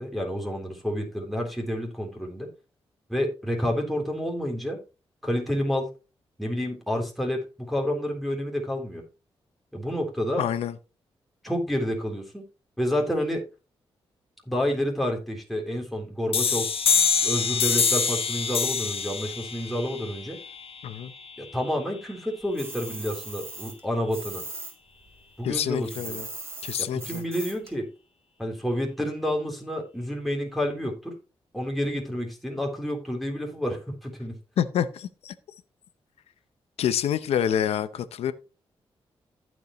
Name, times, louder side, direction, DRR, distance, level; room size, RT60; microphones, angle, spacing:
voice 1, 0.0-2.5 3.1-4.8 5.2-5.9 6.4-9.0 9.7-10.4 11.4-12.4 12.8-13.4 14.5-16.7 17.2-20.4 21.4-24.4 25.4-26.2 26.9-27.9 28.4-31.1 31.5-34.4, equal, ahead, 3.7 m, -29 dB
voice 2, 10.4-10.7 20.8-21.1 25.4-26.3 26.6-27.2 34.6-35.3 36.8-38.3, left 9 dB, 90° left, 0.7 m, -27 dB
sound 1, 16.3-21.7, left 6 dB, 65° left, 1.2 m, -26 dB
sound 2, 22.6-24.7 25.0-27.7, right 2 dB, 25° right, 3.8 m, -39 dB
15.0 x 5.4 x 3.1 m
cardioid pair, 55°, 10 cm